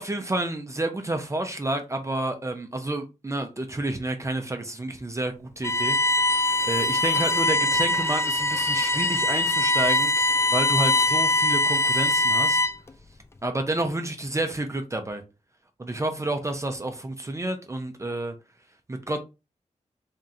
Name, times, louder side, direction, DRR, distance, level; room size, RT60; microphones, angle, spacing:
voice 1, 0.0-6.3 6.7-12.6 13.4-15.2 15.8-18.3 18.9-19.2, right 2 dB, 25° right, 0.6 m, -30 dB
Bowed string instrument, 5.6-12.9, left 1 dB, 20° left, 0.4 m, -22 dB
3.7 x 3.6 x 2.7 m
wide cardioid pair, 85°, 13 cm